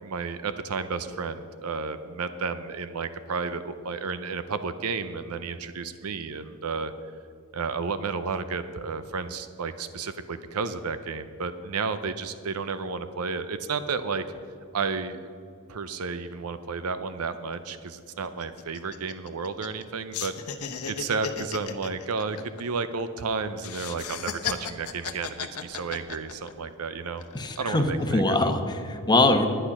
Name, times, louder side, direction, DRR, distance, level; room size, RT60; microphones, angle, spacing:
voice 1, 0.0-6.9 7.5-14.2 14.7-15.3 15.7-20.3 20.9-27.2 27.6-28.5, right 4 dB, 80° right, 11 dB, 0.6 m, -32 dB
sound 1, 17.3-17.4 17.7-17.9 18.2-19.8 20.1-23.2 23.6-26.7 27.2-27.7, left 7 dB, 80° left, 0.9 m, -35 dB
voice 2, 27.3-29.5, left 2 dB, 20° left, 5 dB, 0.9 m, -23 dB
11.0 x 10.0 x 5.9 m, 2.4 s
head